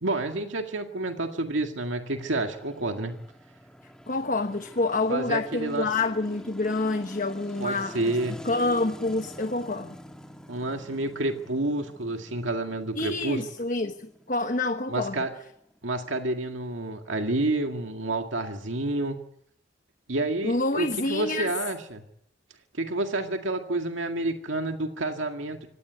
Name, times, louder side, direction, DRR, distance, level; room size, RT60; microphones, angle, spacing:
voice 1, 0.0-3.1 5.1-5.9 7.6-8.4 10.5-13.4 14.9-15.3 15.8-19.2 20.1-22.0 22.7-25.6, right 2 dB, 75° right, 4 dB, 2.0 m, -29 dB
sound 1, 2.1-16.4, equal, 5° left, 1.6 m, -46 dB
voice 2, 4.1-8.2 8.4-10.0 13.0-15.3 20.4-21.5, left 2 dB, 40° left, 8 dB, 1.1 m, -27 dB
25.5 x 17.5 x 9.5 m, 0.74 s
head